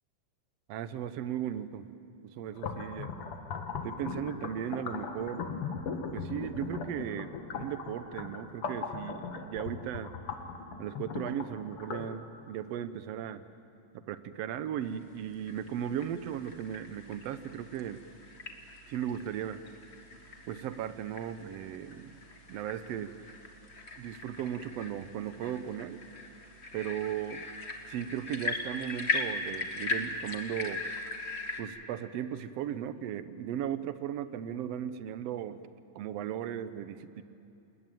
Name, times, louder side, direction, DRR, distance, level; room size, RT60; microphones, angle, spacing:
voice 1, 0.7-1.9 2.2-3.1 3.8-5.5 5.9-10.1 10.8-13.4 13.9-18.0 18.9-19.6 20.5-22.2 22.5-23.2 24.0-26.0 26.7-27.5 27.9-30.8 31.6-35.6 35.9-37.2, right 10 dB, 75° right, 13 dB, 1.5 m, -37 dB
sound 1, 2.5-12.1, left 5 dB, 50° left, 2.1 m, -39 dB
sound 2, 15.2-31.6, left 3 dB, 30° left, 1.2 m, -39 dB
29.0 x 20.0 x 9.2 m, 2.7 s
omnidirectional pair, 3.7 m